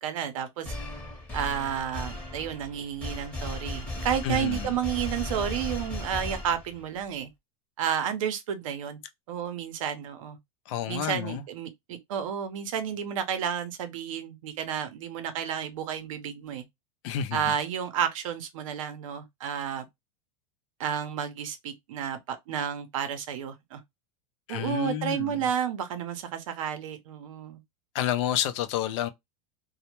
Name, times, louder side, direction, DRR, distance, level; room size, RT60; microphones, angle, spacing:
voice 1, 0.0-0.7 1.3-7.3 7.8-9.0 9.3-10.4 10.9-16.6 17.3-19.8 20.8-23.8 24.5-27.6, right 8 dB, 75° right, 0.7 m, -31 dB
sound 1, 0.6-7.0, left 2 dB, 10° left, 0.9 m, -36 dB
voice 2, 4.2-4.7 10.7-11.4 17.0-17.4 24.5-25.4 27.9-29.1, left 11 dB, 60° left, 0.5 m, -29 dB
2.2 x 2.1 x 2.9 m
supercardioid pair, 135°, 17 cm